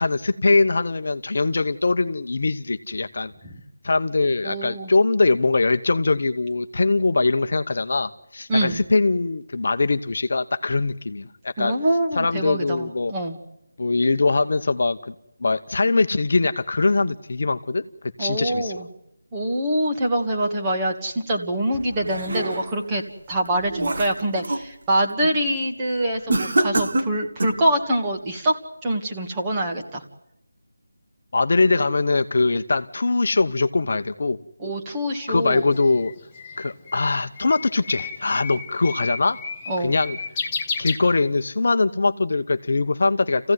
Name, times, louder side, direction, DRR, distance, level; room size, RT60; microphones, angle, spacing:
voice 1, 0.0-3.3 3.8-11.7 12.2-13.1 13.8-15.1 15.4-17.8 18.2-18.7 31.3-34.4 35.3-36.1 36.6-39.4 39.8-40.2 40.8-43.5, left 3 dB, 50° left, 9 dB, 0.9 m, -22 dB
voice 2, 4.4-4.9 8.5-8.8 11.6-13.4 18.2-18.9 19.3-23.0 23.3-30.0 34.6-35.6 39.7-40.0, right 1 dB, 15° right, 0 dB, 1.8 m, -25 dB
sound 1, 21.7-22.9 23.4-24.7 25.1-25.4 26.3-27.7, right 1 dB, 50° right, 2.1 m, -26 dB
Bird, 35.4-41.6, left 5 dB, 10° left, 1.4 m, -33 dB
28.5 x 16.0 x 9.5 m, 0.82 s
figure-of-eight pair, 175°, 0 cm